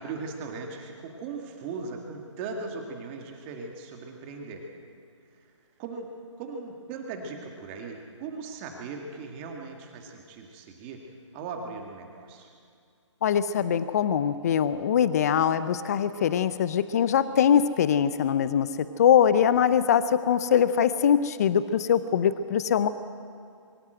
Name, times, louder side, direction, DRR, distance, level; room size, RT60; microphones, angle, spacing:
voice 1, 0.0-4.6 5.8-6.1 6.4-11.0 11.3-12.5, right 4 dB, 20° right, 2 dB, 2.0 m, -38 dB
voice 2, 13.2-18.7 19.0-22.9, left 8 dB, 30° left, 14 dB, 0.6 m, -22 dB
23.5 x 14.5 x 7.9 m, 2.3 s
figure-of-eight pair, 155°, 16 cm